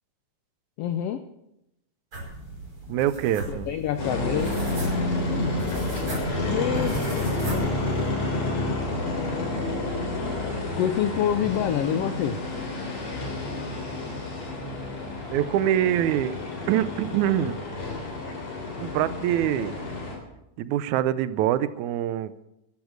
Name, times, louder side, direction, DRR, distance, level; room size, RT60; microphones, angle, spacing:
voice 1, 0.8-1.2 3.5-4.5 5.3-5.5 6.5-7.0 10.8-12.4, left 10 dB, 80° left, 10 dB, 1.3 m, -26 dB
sound 1, 2.1-8.1, right 2 dB, 45° right, 6.0 m, -37 dB
voice 2, 2.9-3.7 15.3-16.4 16.7-17.6 18.8-19.7 20.6-22.3, right 11 dB, 80° right, 15 dB, 2.1 m, -24 dB
sound 2, 4.0-20.2, left 2 dB, 65° left, 4.7 m, -30 dB
14.5 x 12.0 x 6.4 m, 0.87 s
omnidirectional pair, 3.5 m